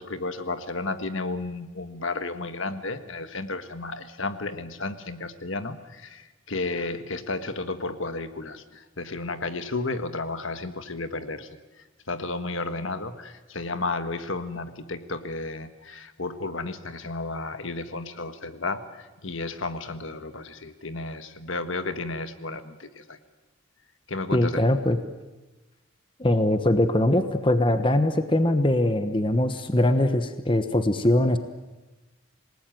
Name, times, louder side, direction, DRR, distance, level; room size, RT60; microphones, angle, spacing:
voice 1, 0.0-11.5 12.1-23.2 24.1-24.6, left 3 dB, 65° left, 10 dB, 1.6 m, -33 dB
voice 2, 24.3-25.0 26.2-31.4, left 1 dB, 25° left, 9 dB, 1.1 m, -22 dB
27.5 x 19.0 x 9.2 m, 1.1 s
head